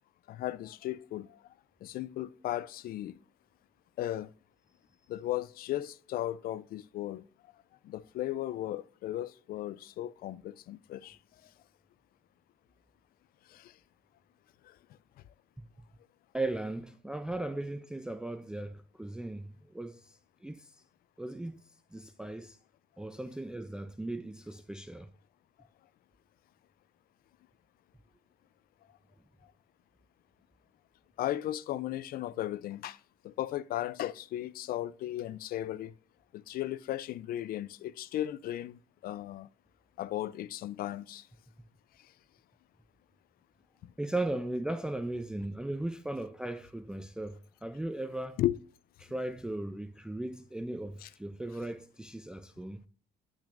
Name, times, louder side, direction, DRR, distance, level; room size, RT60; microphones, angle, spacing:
voice 1, 0.3-1.3 1.8-3.2 4.0-4.3 5.1-7.2 7.8-11.2 13.5-13.6 31.2-33.0 33.2-35.9 36.3-39.5 40.0-41.2 48.4-48.6 51.0-51.1, left 13 dB, 60° left, 0.4 m, -36 dB
voice 2, 16.3-20.8 21.2-22.6 23.0-25.1 44.0-48.4 49.0-52.8, right 2 dB, 5° right, 0.4 m, -37 dB
10.5 x 6.2 x 2.5 m
cardioid pair, 110°, 17 cm